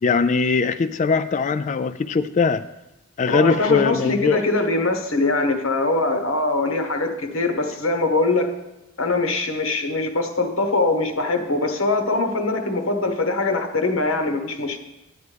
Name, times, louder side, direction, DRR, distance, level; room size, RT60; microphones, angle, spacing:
voice 1, 0.0-2.6 3.2-4.4, left 4 dB, 35° left, 10 dB, 0.3 m, -21 dB
voice 2, 3.3-8.5 9.0-14.8, left 2 dB, 70° left, 4 dB, 1.2 m, -22 dB
11.0 x 9.3 x 3.4 m, 0.94 s
head